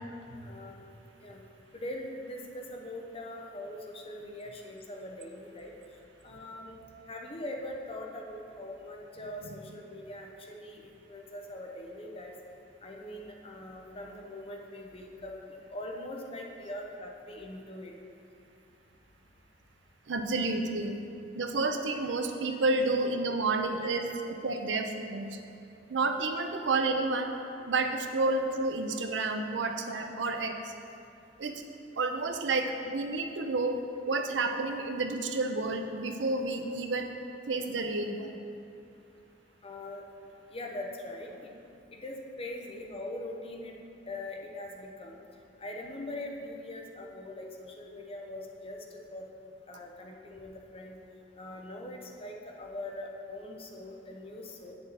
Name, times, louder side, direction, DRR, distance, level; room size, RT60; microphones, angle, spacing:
voice 1, 0.4-0.8 1.2-1.4 1.7-5.7 6.2-6.8 7.1-12.3 12.8-15.4 15.7-17.9 23.8-23.9 39.6-40.0 40.5-41.5 42.0-43.7 44.1-45.2 45.6-48.8 49.1-49.3 49.7-51.0 51.4-54.7, left 1 dB, 30° left, 0 dB, 0.8 m, -42 dB
voice 2, 20.1-21.0 21.3-24.1 24.4-25.4 25.9-27.3 27.7-30.7 31.4-31.6 32.0-37.1 37.5-38.3, right 3 dB, 85° right, 5 dB, 0.6 m, -30 dB
8.2 x 6.8 x 4.1 m, 2.6 s
head